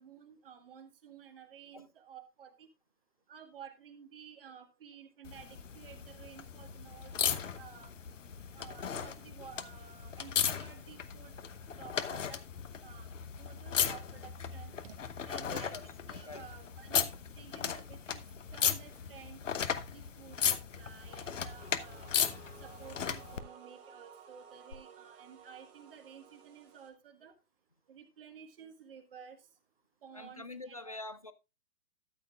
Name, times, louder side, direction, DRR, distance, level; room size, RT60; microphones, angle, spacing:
voice 1, 0.0-2.7 3.3-5.5 5.7-7.9 8.5-11.3 11.8-12.4 12.8-13.1 13.4-15.0 15.3-15.7 16.1-17.1 17.4-18.2 18.5-19.4 19.9-22.1 22.6-27.3 27.9-29.4 30.0-31.0, right 8 dB, 40° right, 1.5 m, -53 dB
sound 1, 5.2-23.4 24.7-24.8, left 7 dB, 55° left, 1.0 m, -36 dB
voice 2, 15.4-15.8 16.3-16.5 30.1-31.3, left 2 dB, 25° left, 0.4 m, -45 dB
sound 2, 20.8-26.9, right 7 dB, 20° right, 1.6 m, -55 dB
13.0 x 8.4 x 2.4 m
figure-of-eight pair, 130°, 45 cm